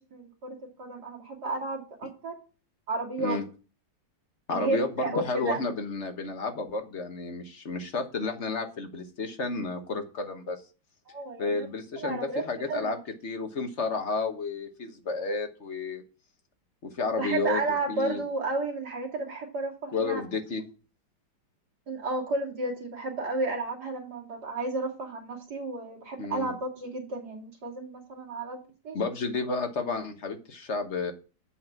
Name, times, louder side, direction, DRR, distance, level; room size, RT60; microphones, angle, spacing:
voice 1, 0.1-2.3 2.9-3.4 4.5-5.6 11.1-11.7 12.0-13.0 17.2-20.2 21.9-28.6 28.8-29.0, right 2 dB, 60° right, 0 dB, 3.0 m, -32 dB
voice 2, 4.5-10.6 11.4-13.0 13.2-16.0 16.8-17.6 17.9-18.2 19.9-20.6 26.2-26.5 28.9-31.1, left 3 dB, 40° left, 6 dB, 1.4 m, -31 dB
7.9 x 6.4 x 6.0 m, 0.35 s
omnidirectional pair, 2.0 m